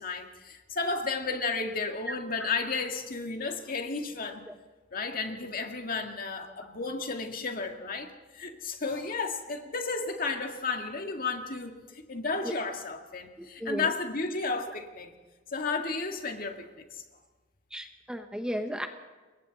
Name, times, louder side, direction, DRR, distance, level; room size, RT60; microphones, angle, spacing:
voice 1, 0.0-4.5 4.9-15.2 15.5-17.0, left 4 dB, 50° left, 4 dB, 2.1 m, -33 dB
voice 2, 13.4-13.9 17.7-18.9, equal, 5° right, 5 dB, 1.1 m, -34 dB
28.0 x 22.5 x 4.2 m, 1.3 s
head